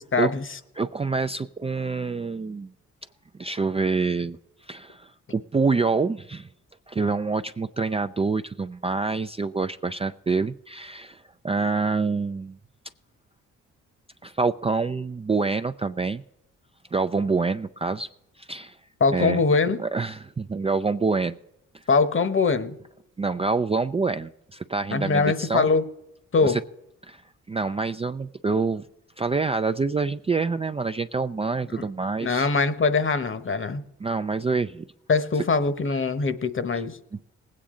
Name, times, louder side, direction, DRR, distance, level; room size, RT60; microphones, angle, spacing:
voice 1, 0.1-0.4 19.0-19.8 21.9-22.8 24.9-25.8 26.3-26.6 31.8-31.9 32.2-33.8 35.1-37.0, left 4 dB, 40° left, 12 dB, 1.1 m, -22 dB
voice 2, 0.8-2.7 3.4-4.4 4.7-6.5 6.9-12.6 14.2-16.2 16.9-18.1 18.4-18.8 19.1-19.4 19.8-21.4 23.2-25.7 26.4-26.6 27.1-27.2 27.5-28.8 29.2-32.5 34.0-34.8 35.9-36.0 36.7-36.8, right 4 dB, 20° right, 10 dB, 0.4 m, -26 dB
19.0 x 8.7 x 3.8 m, 0.83 s
supercardioid pair, 60°, 32 cm